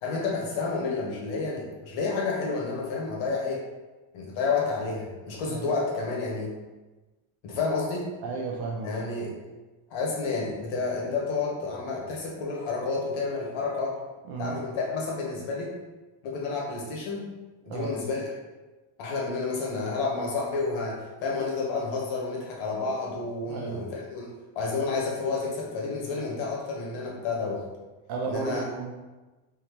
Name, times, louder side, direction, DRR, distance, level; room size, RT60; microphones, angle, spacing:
voice 1, 0.0-3.6 4.1-6.5 7.4-8.1 8.8-9.3 9.9-14.0 14.4-15.8 16.2-17.3 17.6-18.3 19.0-27.6 28.2-28.6, left 4 dB, 70° left, -2 dB, 1.2 m, -30 dB
voice 2, 8.2-8.9 14.3-14.6 17.7-18.0 23.5-23.8 28.1-28.9, right 4 dB, 50° right, -1 dB, 0.6 m, -33 dB
3.7 x 2.7 x 3.0 m, 1.2 s
cardioid pair, 140°, 50 cm